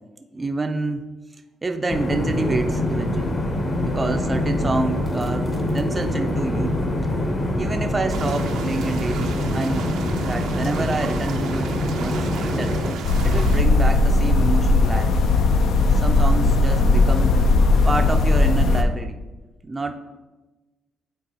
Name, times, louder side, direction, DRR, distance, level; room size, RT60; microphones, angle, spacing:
voice 1, 0.3-1.0 1.6-3.4 3.8-6.8 7.6-11.7 12.0-12.8 13.2-15.3 15.9-17.3 17.8-19.2 19.6-19.9, right 3 dB, 25° right, 5 dB, 0.4 m, -28 dB
sound 1, 1.9-12.9, left 1 dB, 40° left, 1.0 m, -24 dB
sound 2, 8.1-13.6, right 6 dB, 85° right, 0.5 m, -35 dB
sound 3, 13.0-18.8, left 2 dB, 75° left, 0.5 m, -17 dB
9.1 x 3.9 x 2.8 m, 1.2 s
cardioid pair, 90°, 0 cm